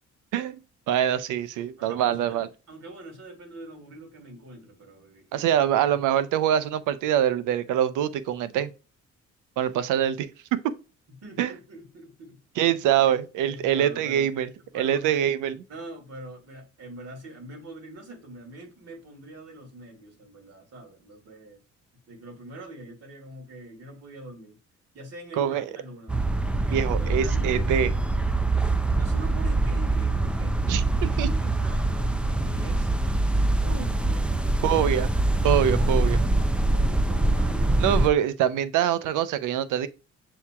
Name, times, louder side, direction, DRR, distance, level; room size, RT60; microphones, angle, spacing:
voice 1, 0.9-2.5 5.3-8.7 9.6-10.6 11.4-11.5 12.6-14.5 14.7-15.6 25.4-25.6 26.7-27.9 30.7-31.3 34.6-35.1 35.4-36.2 37.8-39.9, right 10 dB, 85° right, 0.5 m, -24 dB
voice 2, 1.8-5.4 11.2-12.4 13.0-14.3 14.7-15.2 15.7-21.6 22.1-24.6 24.9-26.2 26.5-28.0 28.9-30.6 30.9-32.9 33.6-34.8 35.7-38.0, right 1 dB, 55° right, 2.1 m, -43 dB
sound 1, 26.1-38.1, right 2 dB, 5° right, 0.4 m, -24 dB
7.1 x 2.8 x 2.2 m
cardioid pair, 90°, 30 cm